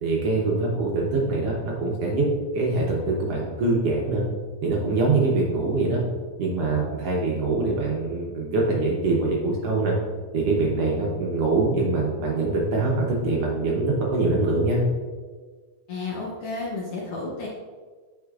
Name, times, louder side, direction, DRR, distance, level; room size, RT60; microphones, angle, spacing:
voice 1, 0.0-2.3 2.5-4.2 4.6-6.0 6.4-9.9 10.3-14.8, right 3 dB, 65° right, -2 dB, 1.7 m, -24 dB
voice 2, 15.9-17.5, left 3 dB, 65° left, -4 dB, 1.5 m, -32 dB
8.3 x 5.6 x 2.4 m, 1.5 s
omnidirectional pair, 3.4 m